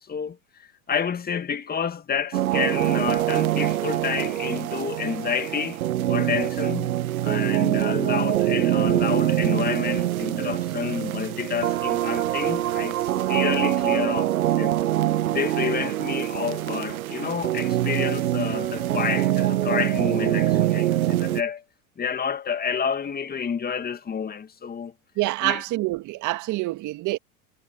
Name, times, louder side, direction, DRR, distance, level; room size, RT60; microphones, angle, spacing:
voice 1, 0.0-5.8 6.1-6.9 7.2-14.8 15.3-21.6 22.0-24.9 25.4-25.6, left 7 dB, 20° left, 2.1 m, -29 dB
sound 1, 2.3-21.4, right 13 dB, 80° right, 1.3 m, -24 dB
voice 2, 25.2-27.2, right 18 dB, 45° right, 2.0 m, -26 dB
hypercardioid pair, 100°, 42 cm